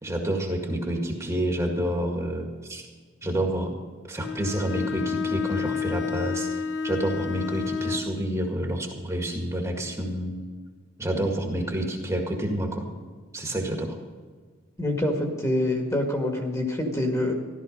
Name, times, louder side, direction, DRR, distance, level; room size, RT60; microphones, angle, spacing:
voice 1, 0.0-2.9 3.2-3.7 4.1-6.6 6.8-10.4 11.0-12.9 13.3-14.0, right 1 dB, 15° right, 1 dB, 1.8 m, -28 dB
Bowed string instrument, 4.2-8.1, left 6 dB, 55° left, 0.8 m, -30 dB
voice 2, 14.8-17.3, left 1 dB, 15° left, 2 dB, 2.0 m, -26 dB
15.0 x 12.5 x 5.3 m, 1.5 s
head